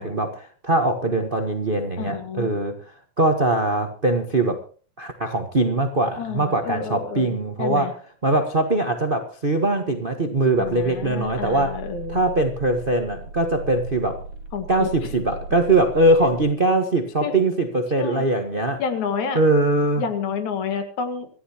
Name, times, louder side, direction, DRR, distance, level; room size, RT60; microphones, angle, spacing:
voice 1, 0.0-2.8 3.2-4.6 5.0-11.8 12.1-14.2 14.7-18.8 19.3-20.0, right 2 dB, 40° right, 0.7 m, -22 dB
voice 2, 2.0-2.6 6.2-7.9 10.6-12.2 14.5-15.1 17.2-17.3 18.0-18.3 18.8-19.4 20.0-21.3, left 6 dB, 70° left, 3.2 m, -29 dB
sound 1, 10.6-16.5, right 2 dB, 80° right, 2.8 m, -37 dB
26.0 x 14.0 x 2.9 m
omnidirectional pair, 3.5 m